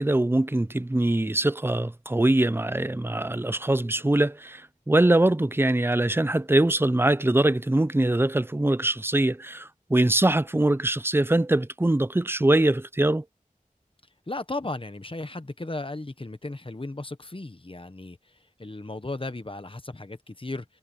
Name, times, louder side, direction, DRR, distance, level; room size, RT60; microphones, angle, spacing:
voice 1, 0.0-4.6 4.9-13.2, right 1 dB, 15° right, 0.5 m, -23 dB
voice 2, 14.3-18.2 18.6-20.6, left 2 dB, 40° left, 1.2 m, -35 dB
wide cardioid pair, 50°, 15 cm